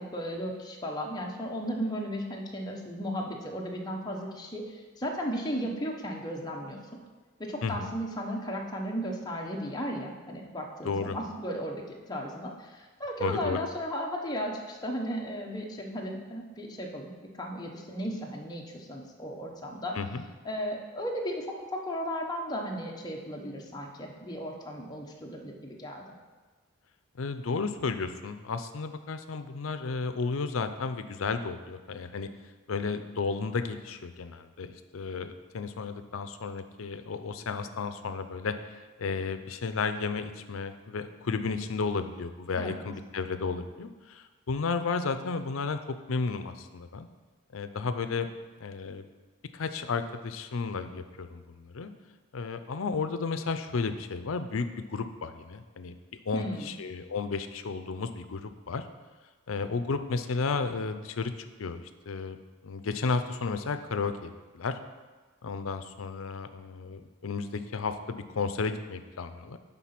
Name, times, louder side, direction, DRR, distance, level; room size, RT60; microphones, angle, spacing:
voice 1, 0.0-6.8 7.4-17.1 17.4-20.0 20.4-21.5 21.7-26.0 42.6-42.8 56.3-56.7, equal, 20° left, 0 dB, 1.0 m, -35 dB
voice 2, 10.8-11.2 13.2-13.6 19.9-20.2 27.2-32.3 32.7-47.1 47.5-48.3 48.6-49.1 49.5-51.9 52.3-55.9 56.3-58.9 59.5-61.3 61.6-62.4 62.6-64.8 65.4-69.6, left 4 dB, 85° left, 10 dB, 0.5 m, -33 dB
9.3 x 3.9 x 5.9 m, 1.4 s
head